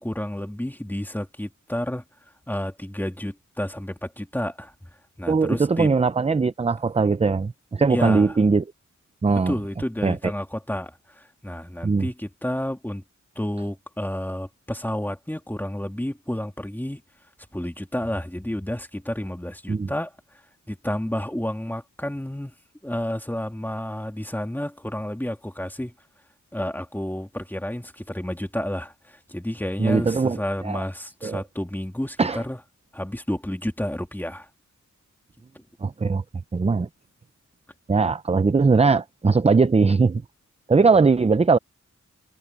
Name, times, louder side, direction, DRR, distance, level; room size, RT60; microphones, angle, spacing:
voice 1, 0.0-2.0 2.5-4.7 5.2-5.9 7.9-8.3 9.3-13.0 13.4-17.0 17.5-20.1 20.7-22.5 22.8-25.9 26.5-32.6 32.9-34.5, left 1 dB, 5° left, 2.4 m, -30 dB
voice 2, 5.3-8.6 9.2-9.5 10.0-10.2 11.8-12.1 19.7-19.9 29.8-30.8 31.2-31.4 32.2-32.4 35.8-36.2 36.5-36.9 37.9-40.2 40.7-41.6, right 4 dB, 20° right, 0.5 m, -20 dB
wide cardioid pair, 120°, 30 cm